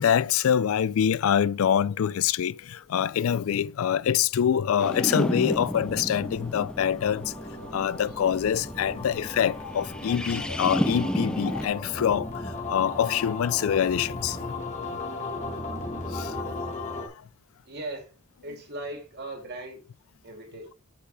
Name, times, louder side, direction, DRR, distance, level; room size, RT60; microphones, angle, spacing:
voice 1, 0.0-7.3 7.7-12.3 12.7-14.4 15.7-15.8 16.1-16.3, left 8 dB, 70° left, 0.3 m, -25 dB
sound 1, 4.8-11.7, equal, 5° left, 0.5 m, -32 dB
sound 2, 5.6-17.1, left 2 dB, 35° left, 1.6 m, -37 dB
voice 2, 17.7-18.1 18.4-19.8 20.2-20.7, right 2 dB, 50° right, 2.4 m, -38 dB
6.1 x 5.7 x 4.7 m
head